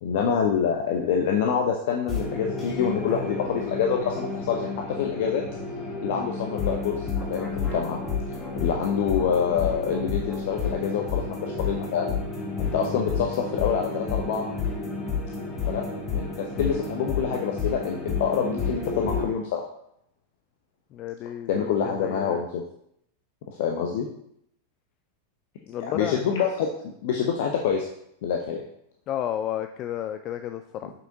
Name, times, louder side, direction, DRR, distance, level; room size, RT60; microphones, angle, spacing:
voice 1, 0.0-4.7 5.0-5.4 6.0-6.9 7.3-8.0 8.6-12.2 12.6-14.5 15.7-15.8 16.1-19.6 21.5-22.6 23.5-24.1 25.8-26.7 27.0-27.9 28.2-28.6, left 7 dB, 50° left, 2 dB, 0.7 m, -26 dB
sound 1, 2.1-19.3, left 4 dB, 20° left, 1.8 m, -31 dB
voice 2, 8.3-8.8 20.9-22.4 25.7-26.3 29.1-30.9, left 10 dB, 35° left, 8 dB, 0.3 m, -33 dB
7.0 x 5.6 x 2.8 m, 0.73 s
figure-of-eight pair, 90°, 0 cm